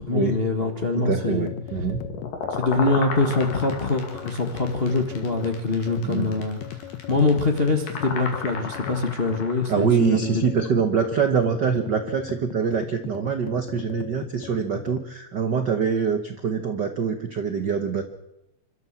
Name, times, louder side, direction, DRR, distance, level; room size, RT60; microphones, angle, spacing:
voice 1, 0.0-1.5 2.6-6.6 7.1-10.4, left 3 dB, 35° left, 4 dB, 0.9 m, -24 dB
sound 1, 0.8-15.1, left 11 dB, 70° left, 2.1 m, -38 dB
voice 2, 1.0-2.0 6.0-6.3 9.7-18.0, right 6 dB, 60° right, 7 dB, 1.1 m, -24 dB
sound 2, 1.7-9.8, left 5 dB, 85° left, 4.1 m, -34 dB
27.5 x 13.0 x 7.3 m, 0.88 s
omnidirectional pair, 3.7 m